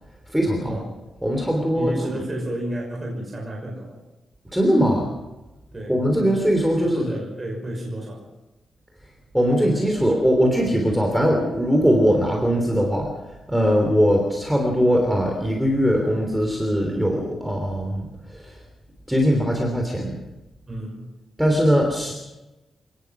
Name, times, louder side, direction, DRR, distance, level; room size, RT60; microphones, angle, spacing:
voice 1, 0.3-0.8 1.2-2.2 4.5-5.1 5.9-7.0 9.3-13.1 13.5-18.6 19.1-20.2 21.4-22.1, equal, ahead, 1 dB, 3.2 m, -21 dB
voice 2, 1.8-4.0 5.7-5.9 6.8-8.2 20.7-21.1, right 1 dB, 20° right, -1 dB, 5.9 m, -31 dB
27.5 x 19.0 x 6.1 m, 1.0 s
wide cardioid pair, 180°, 0 cm